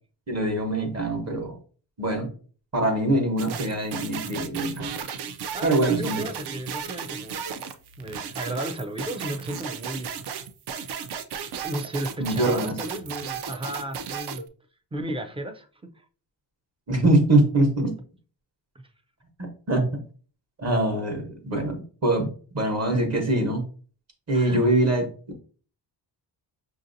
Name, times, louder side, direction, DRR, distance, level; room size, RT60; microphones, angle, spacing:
voice 1, 0.3-1.6 2.0-2.3 2.7-4.9 5.6-6.3 12.2-12.8 16.9-17.9 19.4-20.0 20.6-23.6 24.3-25.1, right 1 dB, 35° right, 1.0 m, -23 dB
sound 1, 3.4-14.4, right 7 dB, 65° right, 0.5 m, -35 dB
voice 2, 5.5-7.4 8.0-10.1 11.6-14.4 14.9-15.7 16.0-16.1 24.3-24.8, right 1 dB, 15° right, 0.3 m, -34 dB
5.7 x 2.6 x 2.6 m
wide cardioid pair, 150°, 43 cm